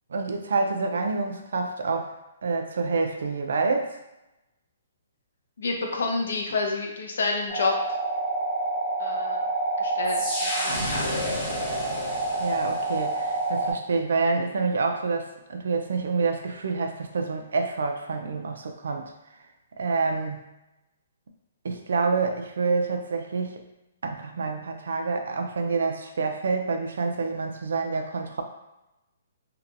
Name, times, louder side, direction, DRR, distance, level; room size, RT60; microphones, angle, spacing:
voice 1, 0.1-2.1 2.4-3.9 12.4-19.1 19.8-20.4 21.6-23.6 24.0-28.4, right 4 dB, 80° right, 5 dB, 0.4 m, -27 dB
voice 2, 5.6-7.7 9.0-9.4 9.8-11.8, left 3 dB, 80° left, 1 dB, 0.6 m, -29 dB
sound 1, 7.5-13.7, right 2 dB, ahead, 1.2 m, -27 dB
2.8 x 2.2 x 2.5 m, 0.94 s
hypercardioid pair, 165°, 0 cm